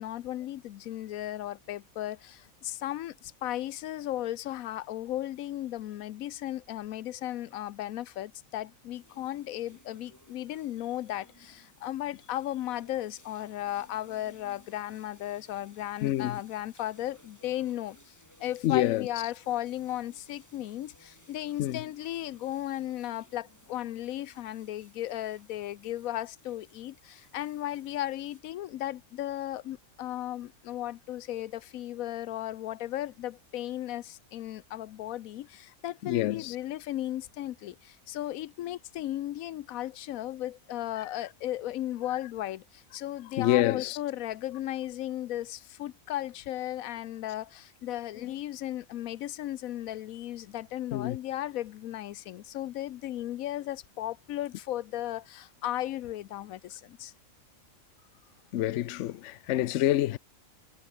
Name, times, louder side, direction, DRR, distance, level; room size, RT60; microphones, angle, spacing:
voice 1, 0.0-57.1, left 13 dB, 85° left, 1.1 m, -36 dB
sound 1, 8.9-28.4, left 1 dB, 10° left, 3.5 m, -60 dB
voice 2, 16.0-16.4 18.6-19.1 21.6-21.8 36.0-36.6 41.0-41.1 43.4-44.0 48.2-48.3 50.9-51.2 58.5-60.2, left 14 dB, 70° left, 0.9 m, -27 dB
omnidirectional pair, 1.4 m